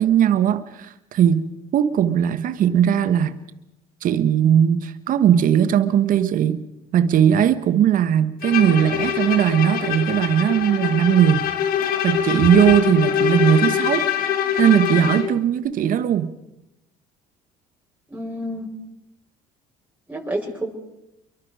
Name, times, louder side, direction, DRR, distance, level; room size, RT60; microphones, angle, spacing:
voice 1, 0.0-3.4 4.0-6.6 6.9-11.5 12.0-14.1 14.6-16.3, right 9 dB, 55° right, 1.5 m, -18 dB
Bowed string instrument, 8.4-15.4, left 9 dB, 65° left, 2.1 m, -23 dB
voice 2, 18.1-18.7 20.1-20.7, right 1 dB, 10° right, 8.0 m, -29 dB
28.5 x 23.5 x 5.0 m
supercardioid pair, 80°, 16 cm